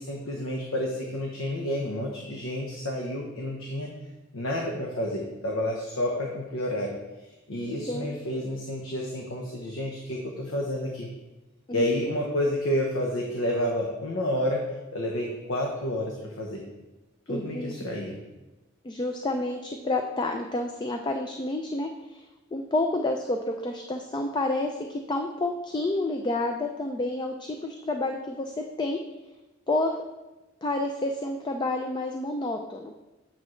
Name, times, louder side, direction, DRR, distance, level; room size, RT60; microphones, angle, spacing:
voice 1, 0.0-3.9 4.3-6.9 7.5-11.1 11.7-14.6 14.9-16.6 17.3-18.2, left 1 dB, 80° left, 0 dB, 0.9 m, -30 dB
voice 2, 7.9-8.2 11.7-12.1 17.3-17.8 18.8-22.2 22.5-29.0 29.7-30.0 30.6-33.0, left 2 dB, 20° left, 4 dB, 0.4 m, -29 dB
8.5 x 6.1 x 3.2 m, 1.1 s
head